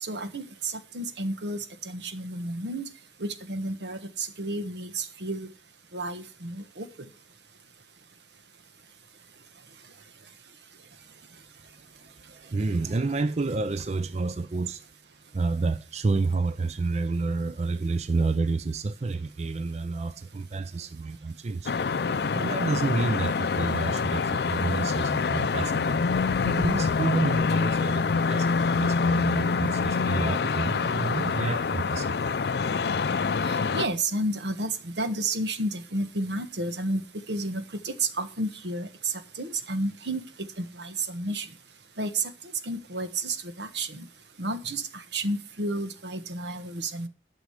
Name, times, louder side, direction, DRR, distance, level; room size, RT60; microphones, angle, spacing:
voice 1, 0.0-2.9 3.2-5.5 5.9-6.9 33.4-41.5 42.0-42.3 42.6-44.1 44.4-47.1, right 2 dB, 80° right, 1.3 m, -31 dB
voice 2, 12.0-14.9 15.3-21.8 22.3-26.0 26.4-32.3, right 3 dB, 40° right, 0.5 m, -29 dB
sound 1, 21.7-33.9, left 4 dB, 65° left, 0.4 m, -26 dB
11.5 x 6.3 x 6.4 m
head